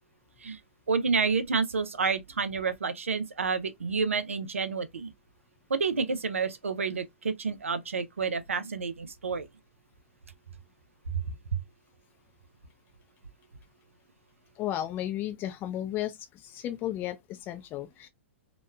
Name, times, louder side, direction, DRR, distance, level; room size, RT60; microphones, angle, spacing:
voice 1, 0.9-5.1 5.7-9.5 11.1-11.2 11.5-11.6, right 5 dB, 85° right, 0.5 m, -29 dB
voice 2, 14.6-18.1, left 12 dB, 30° left, 0.4 m, -34 dB
2.9 x 2.2 x 2.2 m
hypercardioid pair, 115°, 7 cm